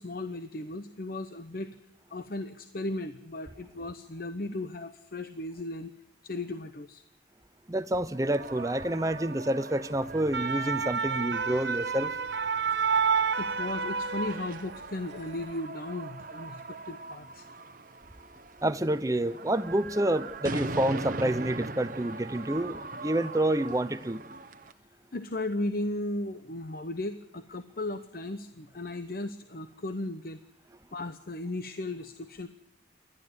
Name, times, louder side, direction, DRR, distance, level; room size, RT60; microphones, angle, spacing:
voice 1, 0.0-1.8 2.1-5.9 6.2-7.0 13.4-17.5 25.1-30.4 30.9-32.5, left 2 dB, 55° left, 0.9 m, -36 dB
voice 2, 7.7-12.2 18.6-24.2, right 1 dB, 20° right, 0.7 m, -28 dB
sound 1, 8.1-24.7, right 3 dB, 45° right, 1.0 m, -42 dB
sound 2, 10.1-14.9 15.2-15.4, right 6 dB, 70° right, 1.0 m, -29 dB
28.0 x 11.5 x 9.6 m
head